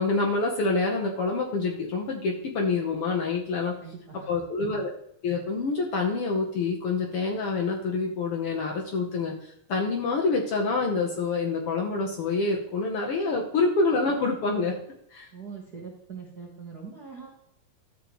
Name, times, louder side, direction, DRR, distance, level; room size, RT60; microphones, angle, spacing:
voice 1, 0.0-3.8 4.3-4.9 5.2-14.8 15.1-15.3, left 3 dB, 70° left, 0 dB, 1.3 m, -27 dB
voice 2, 3.8-4.4 15.3-17.3, right 5 dB, 50° right, -2 dB, 1.2 m, -42 dB
12.5 x 7.5 x 3.0 m, 0.74 s
omnidirectional pair, 3.9 m